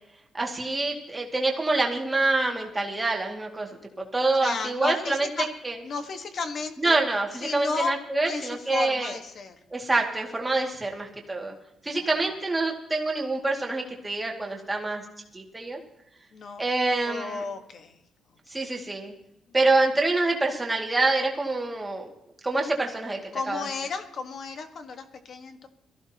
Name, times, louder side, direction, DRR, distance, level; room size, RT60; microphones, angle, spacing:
voice 1, 0.3-3.7 4.0-5.3 5.6-5.8 6.8-9.1 9.7-11.5 11.8-15.0 15.3-15.8 16.6-17.4 18.5-19.1 19.5-22.1 22.4-23.2 23.5-23.7, right 2 dB, 10° right, 0 dB, 2.2 m, -26 dB
voice 2, 4.4-5.5 5.8-7.0 7.4-8.0 8.2-9.5 11.9-12.1 16.3-16.6 17.0-17.9 23.3-25.7, left 4 dB, 40° left, 7 dB, 1.4 m, -33 dB
22.5 x 15.0 x 2.9 m, 0.82 s
cardioid pair, 175°, 0 cm